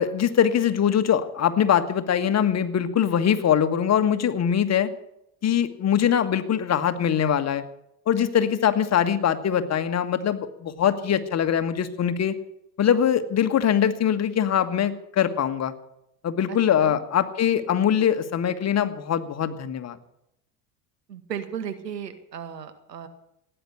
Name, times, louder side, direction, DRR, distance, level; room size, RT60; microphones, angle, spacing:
voice 1, 0.0-4.9 5.4-7.6 8.1-12.3 12.8-15.7 16.2-20.0, left 9 dB, 35° left, 9 dB, 1.6 m, -22 dB
voice 2, 16.5-17.0 21.1-23.1, right 8 dB, 90° right, 8 dB, 2.0 m, -35 dB
17.0 x 10.0 x 8.5 m, 0.79 s
hypercardioid pair, 80°, 47 cm